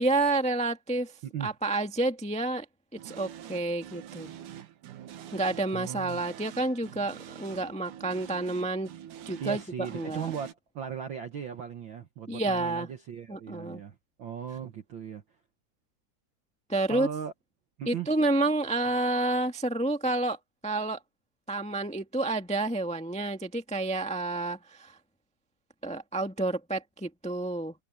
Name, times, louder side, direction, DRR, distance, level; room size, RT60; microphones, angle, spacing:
voice 1, 0.0-1.1 1.4-2.6 3.0-4.3 5.3-8.9 9.2-10.3 12.3-12.9 13.3-13.8 16.7-17.1 17.9-20.4 20.6-21.0 21.5-25.0 25.8-27.7, right 2 dB, 5° left, 0.5 m, -29 dB
sound 1, 3.0-10.5, right 10 dB, 85° right, 3.0 m, -46 dB
voice 2, 5.7-6.2 9.4-15.2 16.9-17.3 17.8-18.1, right 8 dB, 65° right, 1.2 m, -37 dB
omnidirectional pair, 3.5 m